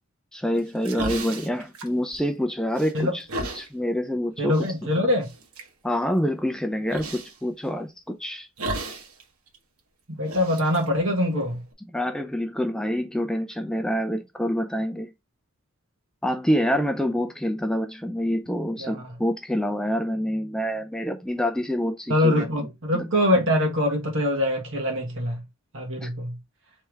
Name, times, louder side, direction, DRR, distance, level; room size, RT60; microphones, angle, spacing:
voice 1, 0.3-3.3 3.5-4.7 5.8-8.5 11.9-15.1 16.2-22.4 22.9-23.1 26.0-26.1, equal, 5° left, 0.3 m, -27 dB
sound 1, 0.6-2.4 2.7-3.7 4.5-4.7 5.2-5.7 6.9-7.4 8.6-9.2 9.5-9.6 10.2-11.7, right 2 dB, 85° right, 1.1 m, -34 dB
voice 2, 4.4-5.3 10.2-11.6 18.8-18.9 22.1-25.4 25.7-26.4, left 1 dB, 60° right, 1.4 m, -23 dB
3.4 x 3.3 x 4.4 m
head